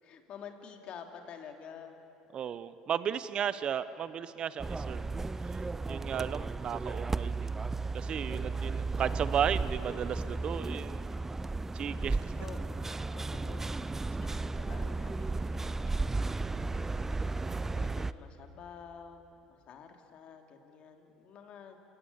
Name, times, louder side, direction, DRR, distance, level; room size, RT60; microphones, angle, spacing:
voice 1, 0.0-2.0 12.4-13.8 14.1-17.1 17.4-21.8, left 7 dB, 55° left, 4 dB, 3.0 m, -50 dB
voice 2, 2.3-7.6 7.9-11.1 11.7-12.3, right 8 dB, 45° right, 15 dB, 1.0 m, -35 dB
sound 1, 4.6-18.1, right 3 dB, 15° right, 0.6 m, -34 dB
29.0 x 18.5 x 8.6 m, 2.9 s
hypercardioid pair, 80°, 2 cm